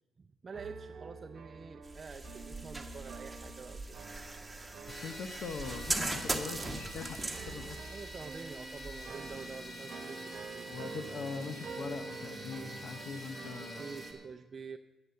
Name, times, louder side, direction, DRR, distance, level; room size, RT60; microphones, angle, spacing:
voice 1, 0.2-4.0 7.9-10.8 13.6-14.8, right 5 dB, 35° right, 5 dB, 0.5 m, -47 dB
sound 1, 0.5-14.3, right 4 dB, 55° right, 1.0 m, -47 dB
sound 2, 1.8-9.7, right 2 dB, 10° right, 1.3 m, -40 dB
voice 2, 4.9-7.8 10.7-13.9, left 5 dB, 65° left, 11 dB, 0.8 m, -42 dB
sound 3, 4.9-14.1, equal, 25° left, 2.2 m, -47 dB
9.8 x 8.1 x 7.7 m, 1.1 s
cardioid pair, 90°, 0 cm